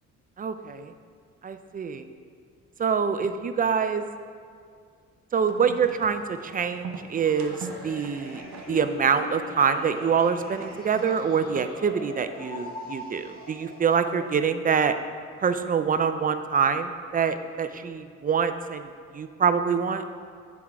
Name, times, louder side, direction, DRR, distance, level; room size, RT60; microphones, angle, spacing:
voice 1, 0.4-0.9 1.4-2.1 2.8-4.0 5.3-8.4 8.7-14.9 15.4-20.0, right 6 dB, 30° right, 9 dB, 0.3 m, -25 dB
sound 1, 5.4-11.8, right 6 dB, 65° right, 0.7 m, -44 dB
sound 2, 7.2-14.3, left 2 dB, 30° left, 1.3 m, -41 dB
7.8 x 4.7 x 3.6 m, 2.2 s
cardioid pair, 90°, 30 cm